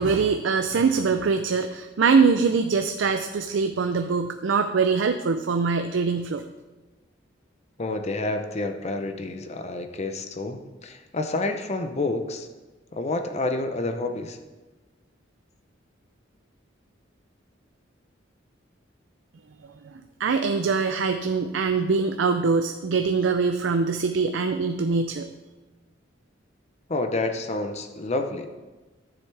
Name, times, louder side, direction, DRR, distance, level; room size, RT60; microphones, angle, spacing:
voice 1, 0.0-6.4 20.2-25.3, right 5 dB, 75° right, 7 dB, 0.4 m, -23 dB
voice 2, 7.8-12.5 12.9-14.4 26.9-28.5, left 2 dB, 35° left, 7 dB, 0.6 m, -29 dB
13.0 x 7.2 x 3.3 m, 1.2 s
head